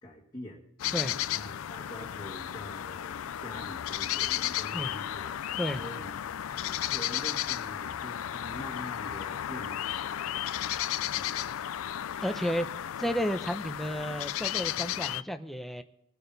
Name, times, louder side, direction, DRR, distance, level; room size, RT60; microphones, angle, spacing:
voice 1, 0.0-0.6 1.3-5.3 5.8-6.2 6.6-10.6 11.1-11.4, left 1 dB, 20° left, -4 dB, 1.8 m, -45 dB
sound 1, 0.8-15.2, left 11 dB, 75° left, 0.4 m, -34 dB
voice 2, 11.2-11.7 12.2-12.7 13.0-15.8, equal, ahead, 7 dB, 0.7 m, -32 dB
21.0 x 8.4 x 4.1 m, 0.79 s
head